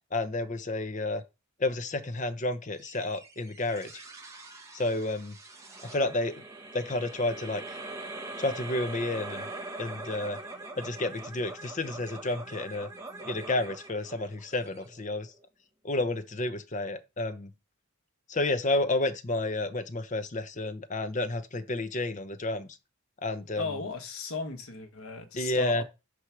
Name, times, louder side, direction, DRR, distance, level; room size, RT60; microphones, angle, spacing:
voice 1, 0.1-1.2 1.6-3.9 4.7-5.4 5.8-6.3 6.7-7.8 8.4-9.5 9.8-10.4 10.7-12.9 13.2-15.3 15.8-17.5 18.3-22.8 23.2-23.8 25.4-25.8, left 2 dB, 35° left, 0.7 m, -31 dB
sound 1, 2.8-15.4, right 2 dB, 15° right, 1.1 m, -43 dB
voice 2, 23.6-25.8, left 4 dB, 75° left, 1.2 m, -36 dB
4.8 x 4.7 x 5.9 m
head